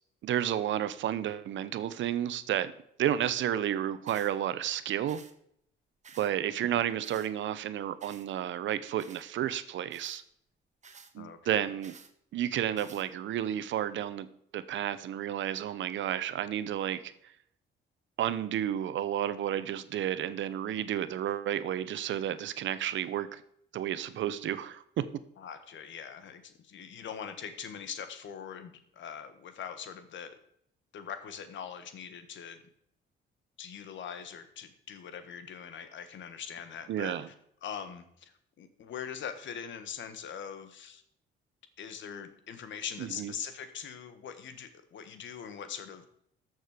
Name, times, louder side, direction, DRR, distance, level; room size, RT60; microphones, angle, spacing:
voice 1, 0.2-2.7 3.0-5.2 6.2-10.2 11.1-11.9 12.3-14.3 14.5-17.3 18.2-23.4 23.7-25.0 36.9-37.3 43.2-43.3, right 11 dB, 75° right, 14 dB, 0.9 m, -31 dB
sound 1, 4.1-4.3 5.1-5.3 6.0-6.3 7.0-7.3 8.0-8.3 9.0-9.3 9.9-10.2 10.8-11.1 11.8-12.1 12.8-13.1, right 5 dB, 35° right, 1.3 m, -52 dB
voice 2, 11.2-11.7 25.4-30.4 30.9-32.6 33.6-37.3 37.6-41.0 41.8-46.1, left 8 dB, 70° left, 10 dB, 1.5 m, -42 dB
14.0 x 6.5 x 5.1 m, 0.70 s
cardioid pair, 90°, 20 cm